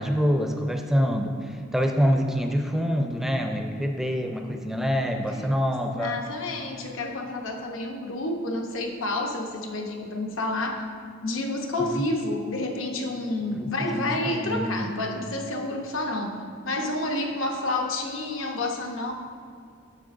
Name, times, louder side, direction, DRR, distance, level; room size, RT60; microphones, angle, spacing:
voice 1, 0.0-6.2 11.8-12.0 13.5-14.9, equal, ahead, 4 dB, 0.4 m, -26 dB
voice 2, 5.7-10.9 11.2-16.4 16.6-19.1, left 2 dB, 80° left, 3 dB, 0.8 m, -29 dB
9.7 x 6.7 x 2.6 m, 2.2 s
head